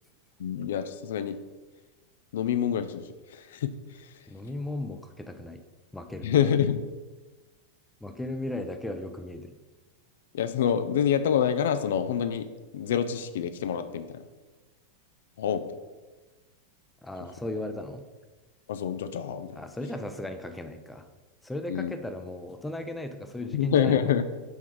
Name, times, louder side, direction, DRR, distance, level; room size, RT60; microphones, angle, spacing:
voice 1, 0.4-1.4 2.3-3.0 3.3-3.7 6.2-6.8 10.3-12.5 12.7-14.2 15.4-15.6 18.7-19.6 21.7-22.0 23.5-24.2, left 8 dB, 60° left, 11 dB, 0.4 m, -26 dB
voice 2, 4.3-5.6 5.9-6.3 8.0-9.6 17.0-18.0 19.6-21.1 21.4-24.2, left 1 dB, 5° left, 7 dB, 0.5 m, -36 dB
6.2 x 3.4 x 4.6 m, 1.2 s
figure-of-eight pair, 90°, 0 cm